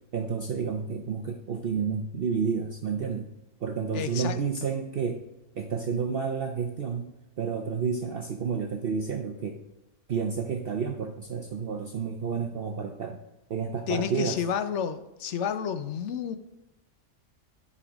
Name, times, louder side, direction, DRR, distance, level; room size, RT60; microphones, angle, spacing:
voice 1, 0.1-3.3 3.6-5.2 5.6-9.6 10.1-13.2 13.5-14.4, right 6 dB, 55° right, 4 dB, 0.8 m, -30 dB
voice 2, 3.9-4.7 13.9-16.4, left 8 dB, 65° left, 10 dB, 0.9 m, -31 dB
10.5 x 5.6 x 3.5 m, 0.95 s
omnidirectional pair, 1.4 m